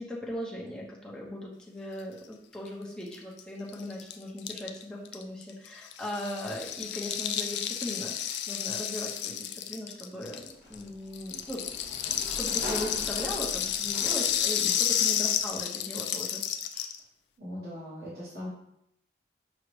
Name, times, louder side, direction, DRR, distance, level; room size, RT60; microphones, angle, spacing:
voice 1, 0.0-11.7 12.1-16.4 16.7-16.9, left 1 dB, 5° left, -4 dB, 0.5 m, -39 dB
Rattle (instrument), 3.1-3.2 3.4-3.5 3.7-10.8 11.1-17.0, left 10 dB, 85° left, 0.3 m, -31 dB
Sliding door, 10.6-14.5, equal, 50° right, 1.1 m, -42 dB
voice 2, 17.4-18.5, equal, 70° right, -9 dB, 1.1 m, -40 dB
5.9 x 2.0 x 3.0 m, 0.78 s
head